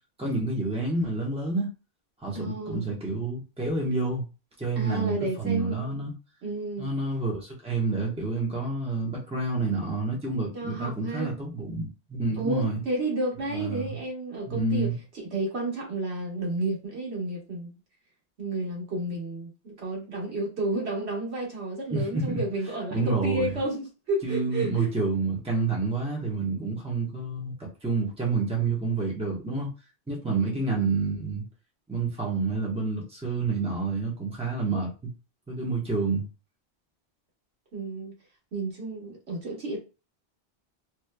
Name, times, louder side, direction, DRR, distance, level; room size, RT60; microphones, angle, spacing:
voice 1, 0.2-1.7 2.2-4.2 4.6-6.1 6.8-12.8 13.5-14.0 14.5-15.0 21.9-22.4 22.9-23.6 24.2-29.7 30.1-31.4 31.9-35.1 35.5-36.3, right 3 dB, 5° right, 0.9 m, -28 dB
voice 2, 2.3-2.9 4.8-6.1 6.4-6.9 10.5-11.3 12.4-14.9 15.1-17.8 18.4-25.0 30.3-30.6 37.7-38.1 38.5-39.8, right 2 dB, 85° right, 1.5 m, -31 dB
3.1 x 3.1 x 2.2 m
omnidirectional pair, 1.1 m